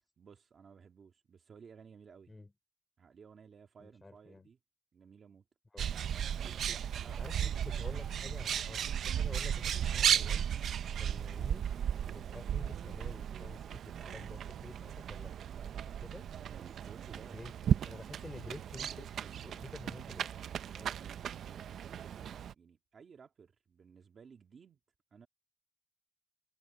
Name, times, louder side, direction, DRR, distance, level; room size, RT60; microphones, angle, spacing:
voice 1, 0.2-2.3 3.0-4.6 4.9-5.4 6.4-7.7 13.9-14.4 15.5-16.0 16.3-17.4 18.0-18.2 18.8-19.4 20.6-24.8 25.1-25.3, right 6 dB, 40° right, 2.0 m, -57 dB
voice 2, 3.8-4.5 5.7-5.9 7.2-9.6 9.9-10.4 11.0-15.3 15.6-15.7 16.0-16.2 17.2-17.5 17.8-19.1 19.4-20.3 20.7-20.9, left 2 dB, 15° left, 3.5 m, -50 dB
Bird, 5.8-22.5, right 9 dB, 65° right, 0.6 m, -35 dB
wide cardioid pair, 170°, 0 cm